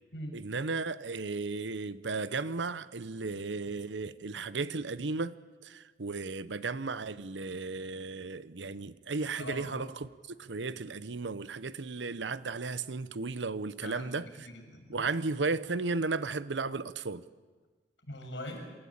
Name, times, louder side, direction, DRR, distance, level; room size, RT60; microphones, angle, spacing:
voice 1, 0.3-14.5 14.9-17.2, right 3 dB, 85° right, 0.8 m, -35 dB
voice 2, 9.4-9.8 13.8-15.1 18.1-18.6, left 1 dB, 85° left, 6.6 m, -42 dB
27.0 x 14.0 x 8.7 m
head